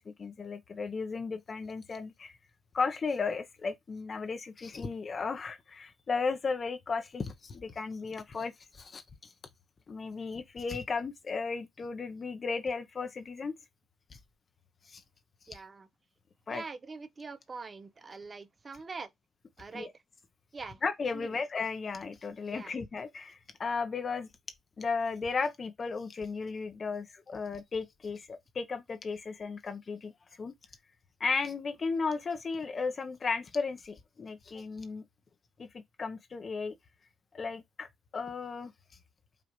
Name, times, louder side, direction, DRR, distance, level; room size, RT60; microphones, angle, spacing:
voice 1, 0.0-2.4 2.7-9.0 9.9-13.5 14.1-14.2 14.9-15.0 15.5-15.6 16.5-16.6 19.7-19.9 20.8-24.3 24.8-30.1 30.4-30.5 31.2-35.0 35.6-36.7 37.3-38.7, left 4 dB, 40° left, 0.7 m, -35 dB
voice 2, 15.5-15.9 16.5-19.1 19.6-19.9 20.5-20.8 21.1-21.4 22.5-22.8, right 4 dB, 30° right, 0.6 m, -43 dB
5.0 x 2.4 x 3.0 m
cardioid pair, 90°, 0 cm